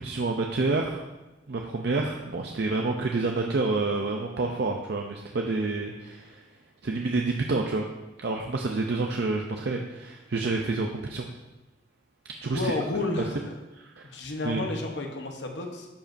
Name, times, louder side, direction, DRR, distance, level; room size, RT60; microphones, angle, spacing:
voice 1, 0.0-1.0 1.5-6.4 6.8-7.8 8.2-11.3 12.4-12.7 13.7-14.1 14.4-14.7, right 3 dB, 60° right, 1 dB, 0.5 m, -28 dB
voice 2, 12.5-13.6 14.0-15.9, left 2 dB, 70° left, 3 dB, 0.9 m, -31 dB
12.0 x 5.1 x 2.6 m, 1.1 s
head